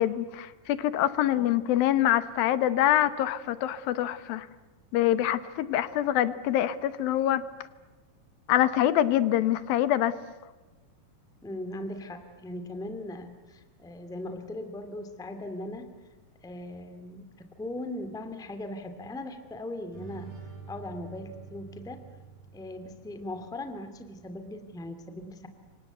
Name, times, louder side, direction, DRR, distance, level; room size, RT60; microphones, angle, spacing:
voice 1, 0.0-4.5 4.9-7.4 8.5-10.1, left 12 dB, 80° left, 14 dB, 2.8 m, -25 dB
voice 2, 11.4-15.9 16.4-20.3 20.7-22.0 22.5-25.5, left 1 dB, ahead, 9 dB, 1.4 m, -39 dB
sound 1, 19.9-23.5, right 5 dB, 75° right, 9.9 m, -47 dB
29.0 x 25.0 x 8.0 m, 1.2 s
omnidirectional pair, 4.2 m